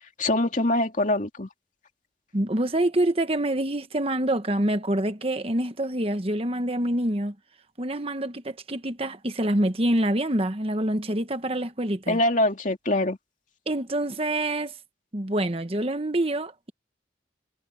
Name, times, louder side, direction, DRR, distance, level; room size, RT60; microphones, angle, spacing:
voice 1, 0.2-1.5 12.1-13.2, left 1 dB, 45° left, 2.5 m, -23 dB
voice 2, 2.3-7.3 7.8-12.2 13.7-14.7 15.1-16.7, right 1 dB, 35° right, 1.4 m, -26 dB
head